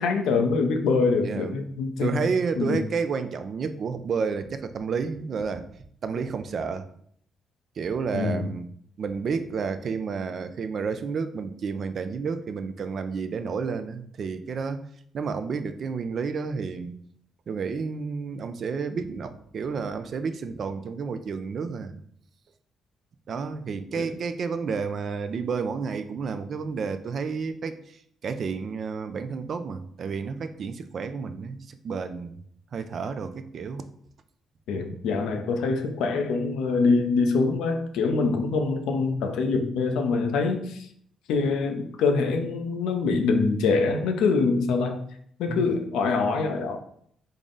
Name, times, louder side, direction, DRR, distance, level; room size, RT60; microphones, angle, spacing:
voice 1, 0.0-2.2 2.6-2.9 8.1-8.5 24.0-24.1 34.7-40.9 41.3-45.0 45.4-46.8, left 4 dB, 85° left, 6 dB, 0.4 m, -24 dB
voice 2, 2.0-5.6 6.0-6.9 7.8-8.7 9.0-14.8 15.1-16.9 17.5-22.0 23.3-27.7 28.2-32.4 32.7-33.8 45.5-45.7, right 5 dB, 55° right, 10 dB, 0.3 m, -30 dB
3.6 x 2.0 x 3.7 m, 0.65 s
cardioid pair, 90°, 0 cm